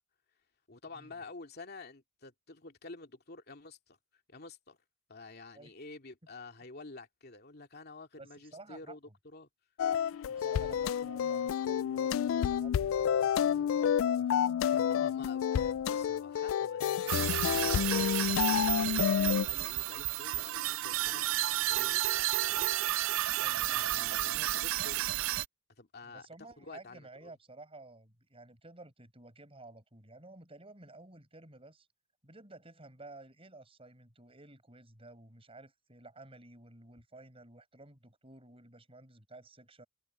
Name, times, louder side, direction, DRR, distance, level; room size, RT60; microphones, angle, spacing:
voice 1, 0.7-4.0 4.3-4.8 5.1-9.0 9.2-9.5 14.8-23.0 23.7-25.1 25.8-27.3, left 3 dB, 50° left, 2.5 m, -50 dB
voice 2, 8.2-9.0 10.3-15.1 23.4-24.5 26.0-31.9 32.2-39.8, right 2 dB, 30° right, 7.9 m, -53 dB
sound 1, 9.8-19.5, left 8 dB, 75° left, 0.3 m, -29 dB
sound 2, 17.1-25.4, right 15 dB, 75° right, 0.3 m, -32 dB
head